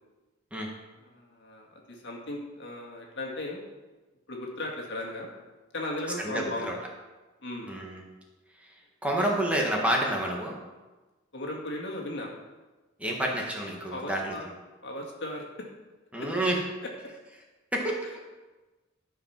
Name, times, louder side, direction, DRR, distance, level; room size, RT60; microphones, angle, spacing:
voice 1, 1.0-3.6 4.3-5.3 5.7-6.7 7.4-7.7 11.3-12.3 13.9-14.5 14.8-15.7 16.2-16.3 16.8-16.9, left 1 dB, 65° left, -1 dB, 2.0 m, -36 dB
voice 2, 6.2-6.7 7.7-8.0 9.0-10.6 13.0-14.3 16.1-16.6 17.7-18.1, right 1 dB, 5° right, -1 dB, 1.4 m, -28 dB
12.5 x 5.0 x 5.9 m, 1.2 s
head